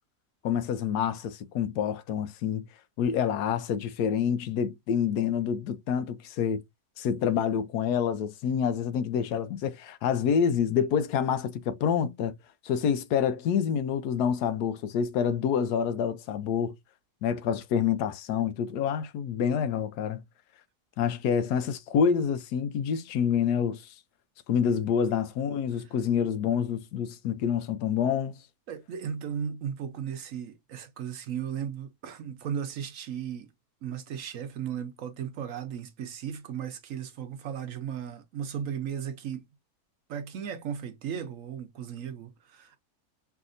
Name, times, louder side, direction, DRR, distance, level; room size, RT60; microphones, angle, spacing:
voice 1, 0.4-2.6 3.0-6.6 7.0-12.3 12.6-16.7 17.2-20.2 21.0-23.9 24.5-28.3, left 7 dB, 80° left, 1.2 m, -27 dB
voice 2, 28.7-33.5 33.8-39.4 40.1-42.8, right 8 dB, 65° right, 0.9 m, -36 dB
5.7 x 2.7 x 2.5 m
omnidirectional pair, 1.7 m